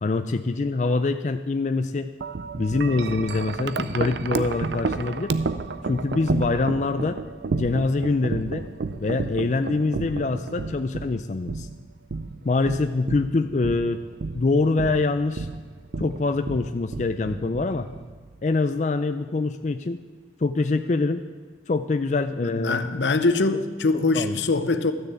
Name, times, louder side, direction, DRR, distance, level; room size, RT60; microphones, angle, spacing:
voice 1, 0.0-2.1 2.6-5.3 5.9-7.2 7.5-8.7 9.0-11.7 12.4-14.0 14.3-15.5 16.0-17.9 18.4-20.0 20.4-21.2 21.7-22.9 24.1-24.4, left 3 dB, 40° left, 9 dB, 0.4 m, -24 dB
Wind chime, 2.2-18.4, right 3 dB, 75° right, 0.5 m, -31 dB
voice 2, 22.4-24.9, left 3 dB, 80° left, 11 dB, 0.8 m, -23 dB
12.5 x 6.6 x 8.4 m, 1.5 s
head